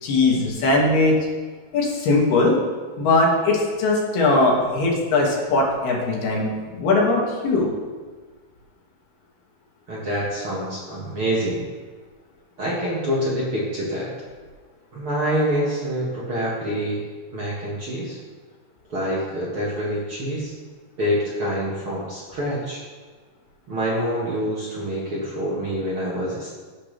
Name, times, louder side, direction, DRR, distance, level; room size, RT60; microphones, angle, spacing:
voice 1, 0.0-1.2 1.7-2.6 3.0-7.7, left 2 dB, 70° left, -3 dB, 4.3 m, -20 dB
voice 2, 9.9-11.6 12.6-14.1 14.9-17.0 17.3-18.2 18.9-20.5 21.0-22.8 23.7-26.5, equal, 40° right, -6 dB, 2.1 m, -26 dB
18.5 x 8.6 x 3.5 m, 1.5 s
omnidirectional pair, 4.6 m